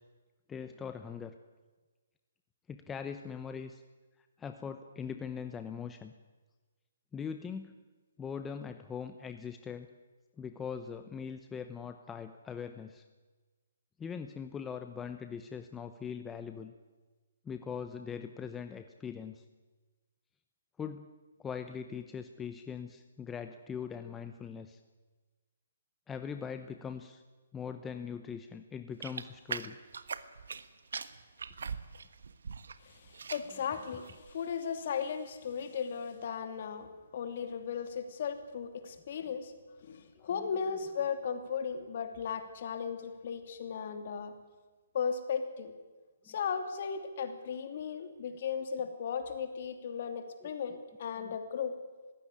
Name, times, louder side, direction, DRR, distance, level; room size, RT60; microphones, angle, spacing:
voice 1, 0.5-1.4 2.7-3.8 4.4-6.1 7.1-7.7 8.2-9.9 10.4-13.0 14.0-16.7 17.4-19.4 20.8-21.1 21.4-24.8 26.1-27.2 27.5-29.8 40.2-40.3 46.3-46.4 48.3-48.4 50.4-50.5 51.2-51.4, left 6 dB, 10° left, 8 dB, 0.8 m, -41 dB
sound 1, 29.0-30.7 30.9-32.8 33.1-33.6 34.0-34.3, right 5 dB, 80° right, 1.4 m, -40 dB
voice 2, 32.8-39.5 39.8-44.3 44.9-45.7 46.3-51.8, left 6 dB, 50° left, 8 dB, 2.8 m, -36 dB
20.5 x 16.0 x 9.9 m, 1.3 s
hypercardioid pair, 160°, 0 cm